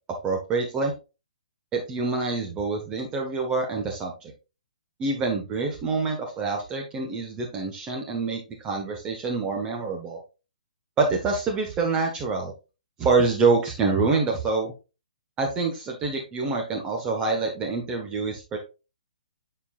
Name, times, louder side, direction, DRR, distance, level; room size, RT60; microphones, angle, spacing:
voice 1, 0.2-0.9 1.7-4.3 5.0-10.2 11.0-12.5 13.0-14.7 15.4-18.6, right 4 dB, 15° right, 1 dB, 1.3 m, -26 dB
11.0 x 4.6 x 2.4 m, 0.29 s
figure-of-eight pair, 125°, 4 cm